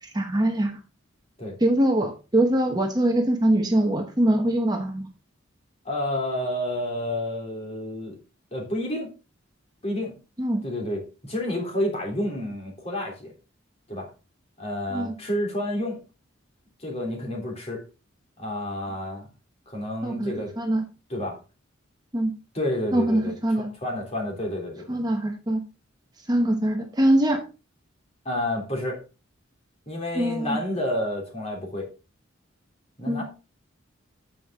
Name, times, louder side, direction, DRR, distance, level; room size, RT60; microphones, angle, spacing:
voice 1, 0.0-0.8 1.6-5.1 10.4-10.6 14.9-15.2 20.0-20.8 22.1-22.3 22.9-23.7 24.9-25.6 26.3-27.4 30.2-30.6 33.1-33.2, right 1 dB, 20° right, 3 dB, 1.0 m, -23 dB
voice 2, 5.8-8.1 8.5-9.1 9.8-10.1 10.6-13.3 13.9-14.1 14.6-16.0 16.8-17.8 18.4-19.3 19.7-20.5 21.1-21.4 22.5-25.0 28.2-29.0 29.9-31.9 33.0-33.2, left 1 dB, 30° left, 0 dB, 3.1 m, -30 dB
9.1 x 7.3 x 3.6 m, 0.31 s
head